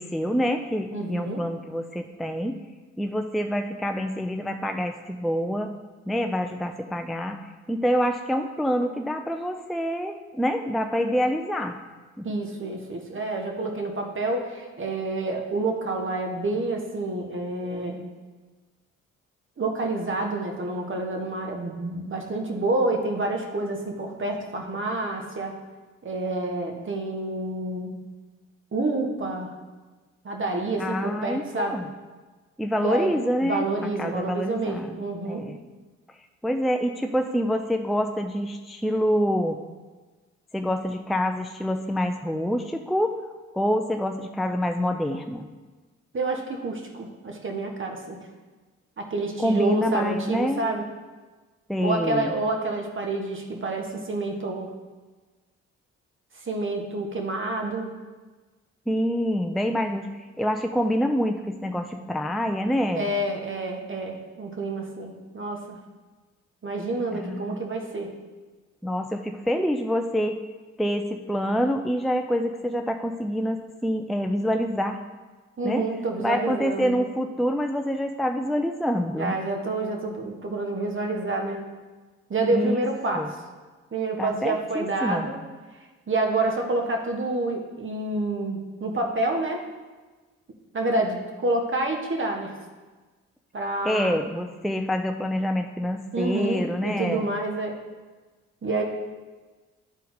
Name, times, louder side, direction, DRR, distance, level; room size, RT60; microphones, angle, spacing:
voice 1, 0.0-2.6 3.0-5.7 6.1-11.8 12.2-12.3 30.8-31.9 32.6-35.0 35.3-35.6 36.1-36.2 36.4-39.6 40.5-43.2 43.5-45.5 49.4-50.6 51.7-52.3 58.9-63.1 67.1-67.6 68.8-70.4 70.8-75.0 75.6-75.8 76.2-79.4 82.5-82.8 83.1-83.3 84.2-85.3 93.8-97.3, equal, ahead, 5 dB, 0.4 m, -26 dB
voice 2, 0.9-1.4 12.2-18.1 19.6-25.6 26.0-28.0 28.7-29.5 30.2-31.8 32.8-35.5 46.1-48.2 49.0-50.8 51.8-54.7 56.3-57.9 62.9-65.8 66.6-68.1 75.6-76.9 79.2-81.7 82.3-83.3 83.9-85.4 86.1-89.6 90.7-92.5 93.5-94.2 96.1-97.8 98.6-98.8, right 2 dB, 40° right, 2 dB, 1.5 m, -28 dB
10.5 x 4.1 x 4.0 m, 1.3 s
hypercardioid pair, 45°, 33 cm